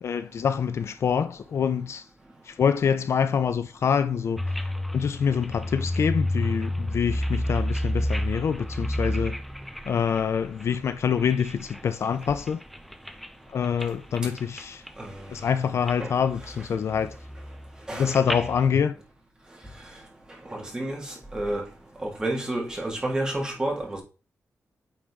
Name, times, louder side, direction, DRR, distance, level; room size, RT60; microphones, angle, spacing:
voice 1, 0.0-2.0 2.5-4.4 4.9-9.4 9.9-12.6 13.5-14.8 15.3-17.2 17.9-18.9, left 7 dB, 60° left, 0.4 m, -25 dB
sound 1, 4.4-11.8 12.2-13.3 13.6-13.9 14.2-15.1 15.4-15.9 16.3-18.6, left 1 dB, ahead, 0.4 m, -30 dB
voice 2, 15.0-15.3 16.0-16.1 17.9-18.2 20.5-21.6 22.0-24.0, right 1 dB, 15° right, 1.8 m, -30 dB
8.7 x 3.4 x 3.6 m
wide cardioid pair, 140°, 5 cm